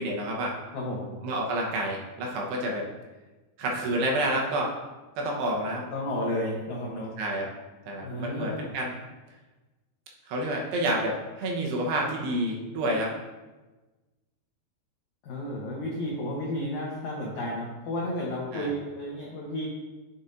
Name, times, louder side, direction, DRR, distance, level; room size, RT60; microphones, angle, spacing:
voice 1, 0.0-0.6 1.2-2.8 3.6-4.7 5.2-5.8 7.2-7.5 7.9-8.9 10.3-13.1 18.5-18.7, right 1 dB, 75° right, -1 dB, 3.0 m, -29 dB
voice 2, 0.7-1.1 5.9-7.1 8.0-8.7 15.2-19.7, left 1 dB, 90° left, -4 dB, 1.7 m, -32 dB
8.5 x 7.0 x 2.6 m, 1.2 s
omnidirectional pair, 5.0 m